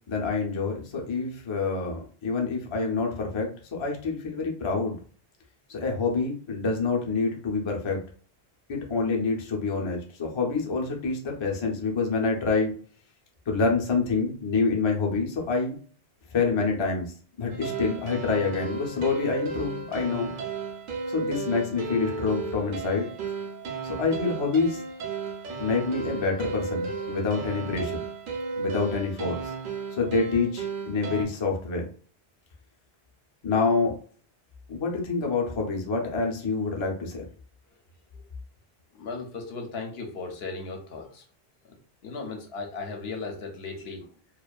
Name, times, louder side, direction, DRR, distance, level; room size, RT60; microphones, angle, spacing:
voice 1, 0.1-5.0 5.7-8.0 8.7-12.8 13.5-15.8 16.3-20.3 21.1-23.1 23.8-24.8 25.6-28.0 28.6-29.4 29.9-31.8 33.4-34.0 34.7-37.3, left 4 dB, 40° left, 0 dB, 0.4 m, -27 dB
sound 1, 17.5-31.3, right 4 dB, 60° right, 0.7 m, -34 dB
voice 2, 38.9-41.2 41.6-41.8 42.0-44.1, left 3 dB, 70° left, 2 dB, 0.8 m, -36 dB
2.4 x 2.3 x 2.2 m, 0.42 s
omnidirectional pair, 1.1 m